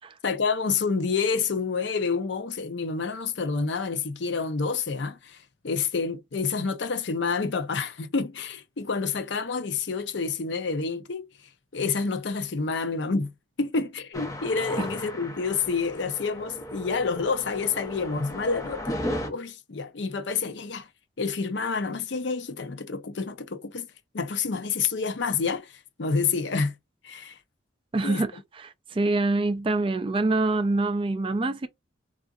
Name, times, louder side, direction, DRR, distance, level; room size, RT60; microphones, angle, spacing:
voice 1, 0.2-11.3 11.7-13.3 13.6-19.0 19.3-20.9 21.2-23.9 24.1-26.7 27.0-27.4 28.0-28.2, left 5 dB, 65° left, 0.6 m, -28 dB
sound 1, 14.1-19.3, left 1 dB, 15° left, 0.7 m, -35 dB
voice 2, 27.9-31.7, right 2 dB, 25° right, 0.3 m, -25 dB
3.6 x 2.5 x 2.4 m
head